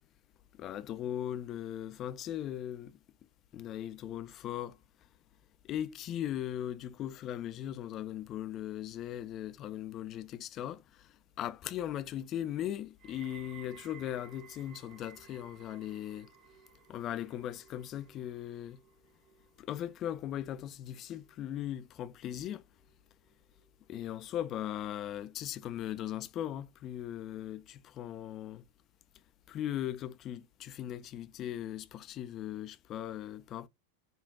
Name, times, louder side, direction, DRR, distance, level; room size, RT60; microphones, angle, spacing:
voice 1, 0.6-2.9 3.5-4.8 5.7-10.8 11.4-16.3 16.9-18.8 19.6-22.6 23.9-28.6 29.5-33.7, left 11 dB, 35° left, 0.3 m, -38 dB
sound 1, 13.0-24.1 24.4-25.0 25.7-25.8, right 8 dB, 40° right, 1.0 m, -59 dB
5.2 x 2.3 x 2.3 m
figure-of-eight pair, 90°, 0 cm